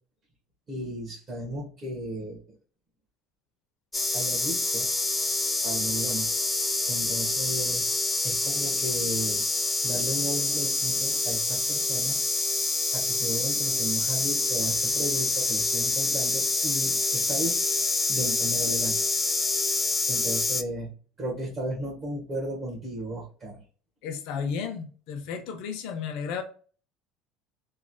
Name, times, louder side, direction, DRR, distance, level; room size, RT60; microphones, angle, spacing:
voice 1, 0.7-2.4 4.1-5.1 5.6-6.3 6.8-7.9 8.2-9.4 9.8-12.2 12.9-17.6 18.1-19.0 20.1-20.9 21.2-23.6, right 1 dB, 40° right, -3 dB, 1.1 m, -34 dB
sound 1, 3.9-20.6, left 3 dB, 15° left, 0.3 m, -26 dB
voice 2, 24.0-26.4, left 6 dB, 70° left, 5 dB, 0.5 m, -33 dB
3.1 x 2.1 x 2.6 m, 0.40 s
supercardioid pair, 105°, 0 cm